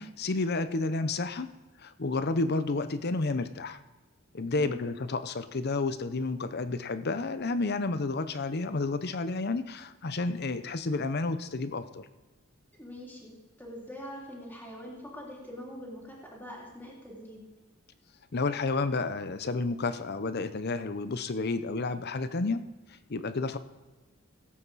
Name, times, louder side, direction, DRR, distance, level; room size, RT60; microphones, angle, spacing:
voice 1, 0.0-1.5 1.8-3.8 4.3-12.1 18.3-22.6 23.1-23.6, left 3 dB, 50° left, 12 dB, 0.7 m, -31 dB
voice 2, 4.5-4.9 12.8-17.4, equal, 10° left, -4 dB, 3.3 m, -44 dB
17.5 x 8.7 x 4.1 m, 1.2 s
head